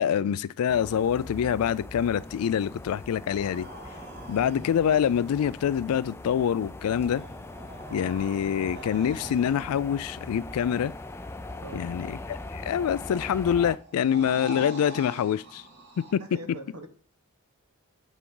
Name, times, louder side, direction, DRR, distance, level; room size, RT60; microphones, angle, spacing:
voice 1, 0.0-3.7 4.3-7.2 7.9-10.9 11.7-15.6 16.1-16.2, left 8 dB, 80° left, 0.3 m, -26 dB
sound 1, 0.7-13.8, left 2 dB, 10° left, 0.4 m, -41 dB
sound 2, 3.3-5.1 6.7-9.9 12.8-16.1, right 1 dB, 50° right, 2.2 m, -43 dB
voice 2, 16.2-16.9, right 1 dB, 75° right, 1.2 m, -42 dB
8.3 x 4.9 x 3.8 m
head